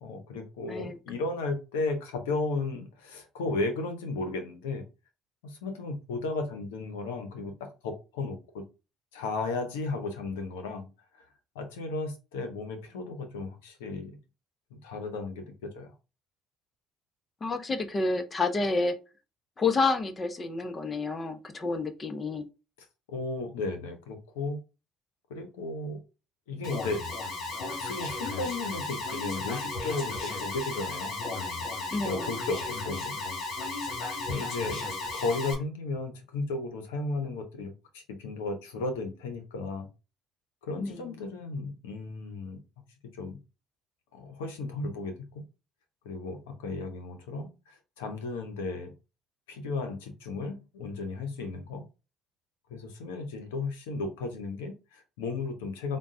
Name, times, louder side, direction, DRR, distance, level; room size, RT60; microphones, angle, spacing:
voice 1, 0.0-4.8 5.4-8.6 9.1-10.9 11.1-11.2 11.5-14.2 14.7-15.9 23.1-24.6 25.3-26.0 26.5-27.0 27.7-31.2 32.0-33.2 34.3-34.8 35.1-39.9 40.6-42.6 43.2-43.4 44.1-45.4 46.0-48.9 49.5-51.8 52.7-56.0, left 3 dB, 85° left, 0.8 m, -34 dB
voice 2, 17.4-18.9 19.6-22.5 31.9-32.3 40.8-41.0, left 3 dB, 30° left, 0.8 m, -29 dB
Alarm, 26.6-35.5, left 3 dB, 65° left, 1.4 m, -34 dB
3.8 x 2.3 x 3.6 m
hypercardioid pair, 65°, 0 cm